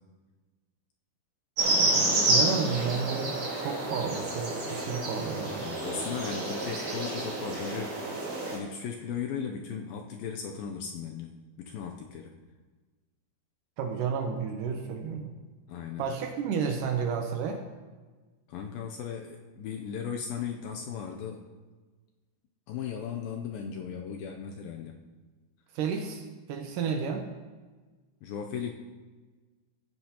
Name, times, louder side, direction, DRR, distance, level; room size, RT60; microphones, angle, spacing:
sound 1, 1.6-8.6, right 2 dB, 45° right, 3.9 m, -29 dB
voice 1, 1.8-5.7 13.8-15.3 16.0-17.6 25.7-27.3, right 6 dB, 80° right, 4 dB, 1.9 m, -32 dB
voice 2, 5.6-8.0 8.5-11.3 11.6-12.3 15.7-16.1 18.5-21.4 22.7-25.0 28.2-28.7, left 7 dB, 80° left, 2 dB, 2.1 m, -37 dB
17.5 x 9.3 x 2.9 m, 1.3 s
omnidirectional pair, 4.8 m